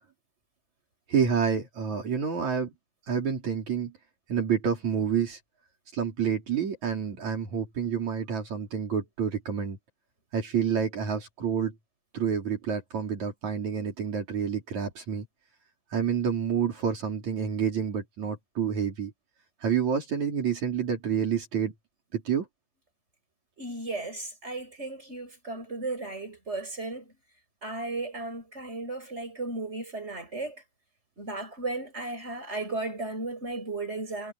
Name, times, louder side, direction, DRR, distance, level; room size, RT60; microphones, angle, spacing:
voice 1, 1.1-2.7 3.1-3.9 4.3-5.4 5.9-9.8 10.3-11.7 12.1-15.3 15.9-19.1 19.6-21.7 22.1-22.5, right 7 dB, 70° right, 5.2 m, -28 dB
voice 2, 23.6-27.1 27.6-30.6 31.2-34.3, right 2 dB, 20° right, 7.9 m, -35 dB
omnidirectional pair, 3.4 m